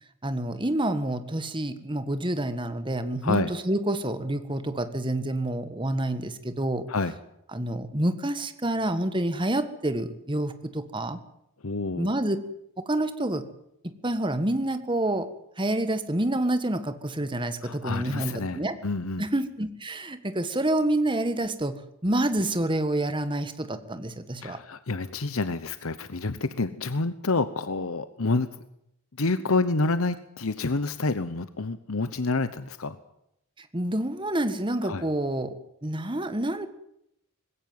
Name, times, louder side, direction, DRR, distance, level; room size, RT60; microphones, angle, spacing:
voice 1, 0.2-6.9 7.5-11.2 12.0-12.4 12.8-13.4 13.8-15.3 15.6-18.7 19.2-24.6 33.7-35.5 35.8-36.7, right 1 dB, 20° right, 10 dB, 1.6 m, -28 dB
voice 2, 11.6-12.1 17.6-19.3 24.4-28.5 29.2-33.0 34.8-35.0, left 3 dB, 70° left, 12 dB, 1.0 m, -28 dB
20.0 x 17.0 x 9.4 m, 0.78 s
head